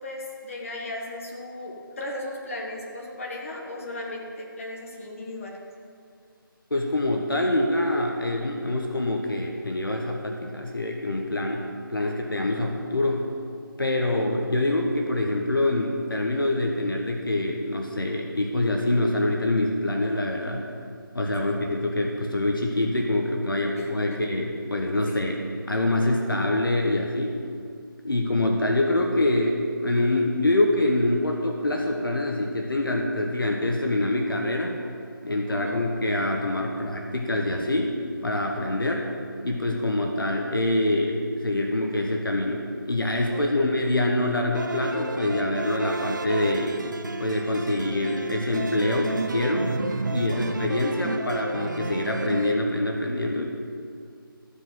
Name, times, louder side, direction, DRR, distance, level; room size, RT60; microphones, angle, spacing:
voice 1, 0.0-5.6 14.1-14.3 21.4-21.5 23.8-23.9 25.1-25.2 35.5-35.8 43.3-43.7 50.1-50.4, left 2 dB, 35° left, -1 dB, 1.5 m, -36 dB
voice 2, 6.7-13.2 13.8-20.7 21.1-27.4 28.0-34.8 35.2-39.1 39.4-46.8 47.2-49.7 50.1-53.5, left 1 dB, 70° left, 1 dB, 1.2 m, -25 dB
sound 1, 44.5-52.6, right 3 dB, 55° right, 0.8 m, -31 dB
13.5 x 5.0 x 7.6 m, 2.4 s
figure-of-eight pair, 160°, 12 cm